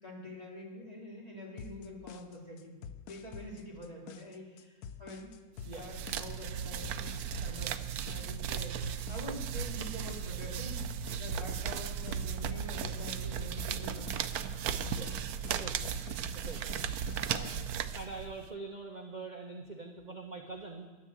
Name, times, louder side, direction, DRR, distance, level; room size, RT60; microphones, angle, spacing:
voice 1, 0.0-2.8 3.1-5.3 5.6-7.1 7.4-7.8 8.1-8.8 9.1-10.8 11.1-14.4 14.7-15.1 15.6-16.3 16.6-16.8 17.4-17.6, left 1 dB, 20° left, -4 dB, 3.2 m, -46 dB
sound 1, 1.6-17.6, left 7 dB, 70° left, 0.9 m, -48 dB
sound 2, 5.6-18.5, right 8 dB, 70° right, 0.9 m, -36 dB
voice 2, 17.1-17.6 17.9-20.9, right 3 dB, 35° right, 2 dB, 0.8 m, -44 dB
11.0 x 10.0 x 7.8 m, 1.3 s
omnidirectional pair, 2.1 m